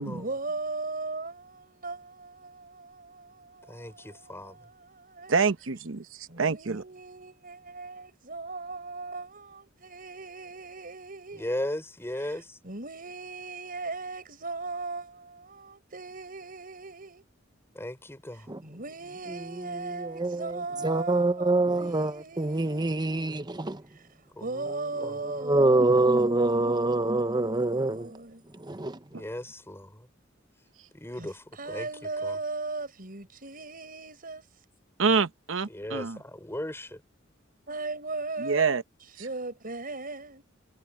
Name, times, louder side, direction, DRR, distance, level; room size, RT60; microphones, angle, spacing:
voice 1, 0.0-5.4 6.3-11.6 12.2-17.2 18.3-22.9 23.9-28.4 31.1-34.6 37.7-38.8 39.2-40.4, right 3 dB, 45° right, 6.0 m, -38 dB
voice 2, 3.7-4.6 11.3-12.6 17.7-18.5 24.4-25.1 29.1-30.1 30.9-31.9 32.2-32.4 35.7-36.9, left 1 dB, 15° left, 5.0 m, -37 dB
voice 3, 5.3-6.8 29.1-29.2 35.0-36.2 38.4-38.8, right 5 dB, 80° right, 0.9 m, -27 dB
voice 4, 20.0-23.8 25.4-28.1 28.7-29.0, right 2 dB, 20° right, 0.9 m, -25 dB
head